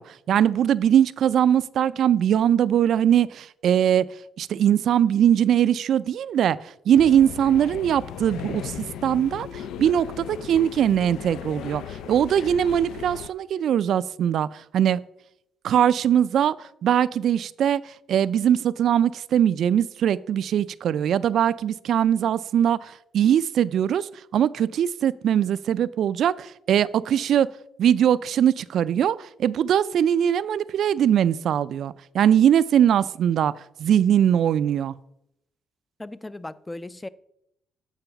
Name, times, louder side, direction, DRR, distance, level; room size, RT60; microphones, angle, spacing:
voice 1, 0.0-4.1 4.4-8.7 9.0-15.0 15.6-27.5 27.8-33.5 33.8-35.0, right 9 dB, 70° right, 0.3 m, -21 dB
sound 1, 6.9-13.3, left 9 dB, 80° left, 0.4 m, -37 dB
voice 2, 36.0-37.1, left 2 dB, 15° left, 0.4 m, -37 dB
8.9 x 4.8 x 5.7 m
cardioid pair, 90°, 0 cm